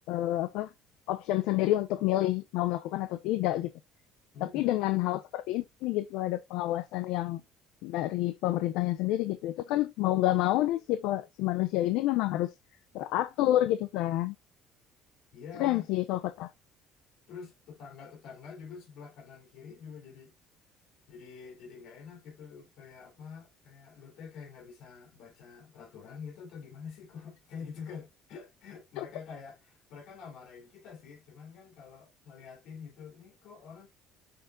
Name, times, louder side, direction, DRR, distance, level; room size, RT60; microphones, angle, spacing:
voice 1, 0.1-0.7 1.1-3.7 4.5-7.4 7.8-12.5 12.9-14.3 15.6-16.5 29.0-29.1, left 15 dB, 80° left, 0.6 m, -28 dB
voice 2, 4.3-4.7 15.3-15.8 17.3-20.3 21.1-33.9, left 6 dB, 65° left, 3.2 m, -47 dB
6.7 x 3.9 x 3.7 m
cardioid pair, 150°, 0 cm